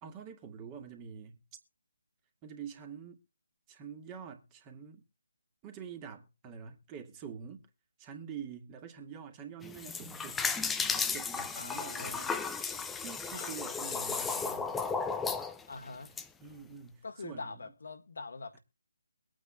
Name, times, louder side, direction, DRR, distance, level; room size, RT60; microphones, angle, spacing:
voice 1, 0.0-1.4 2.4-3.2 3.7-5.0 5.6-7.7 8.0-10.4 11.0-12.4 13.0-14.8 16.4-17.7 18.5-18.6, right 7 dB, 20° right, 2.0 m, -46 dB
sound 1, 9.6-16.2, left 5 dB, 5° left, 0.7 m, -34 dB
voice 2, 11.6-12.3 13.3-14.0 15.7-16.2 17.0-18.6, left 4 dB, 60° left, 1.7 m, -44 dB
23.5 x 9.2 x 2.3 m
figure-of-eight pair, 150°, 0 cm